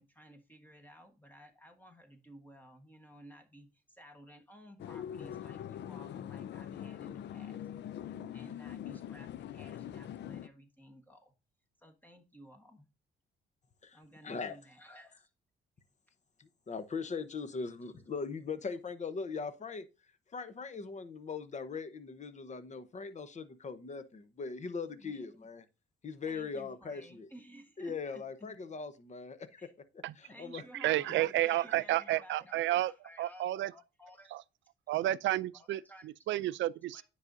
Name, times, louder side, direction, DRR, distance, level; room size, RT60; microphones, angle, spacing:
voice 1, 0.0-7.7 8.1-11.3 11.8-12.9 13.9-15.3 17.7-17.8 25.0-25.5 26.3-28.5 29.6-29.7 30.3-33.4 33.7-34.4 35.5-36.1 36.9-37.0, equal, 10° left, 1.3 m, -55 dB
sound 1, 4.8-10.5, left 10 dB, 60° left, 0.5 m, -43 dB
voice 2, 14.2-14.6 16.4-19.9 20.3-25.6 26.0-27.3 27.8-29.6 30.2-30.6, left 5 dB, 35° left, 0.9 m, -40 dB
voice 3, 30.8-32.9 33.2-33.7 34.9-35.8 36.3-37.0, right 15 dB, 70° right, 0.4 m, -30 dB
9.7 x 4.9 x 2.6 m
cardioid pair, 90°, 20 cm